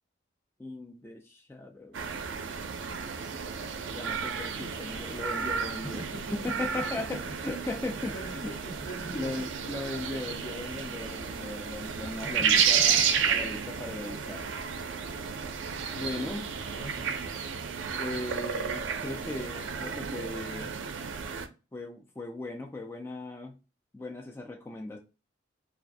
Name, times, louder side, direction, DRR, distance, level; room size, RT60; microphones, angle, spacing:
voice 1, 0.6-2.2 3.9-6.0 6.3-8.5 9.1-14.4 15.9-16.4 17.9-20.7 21.7-23.5 23.9-25.0, left 2 dB, 15° left, 0.3 m, -38 dB
sound 1, 1.9-21.5, right 7 dB, 85° right, 0.4 m, -32 dB
voice 2, 5.8-7.5 8.1-10.1 12.2-13.2 16.1-16.3 16.7-17.1, right 1 dB, 60° left, 1.2 m, -43 dB
2.3 x 2.1 x 2.5 m
head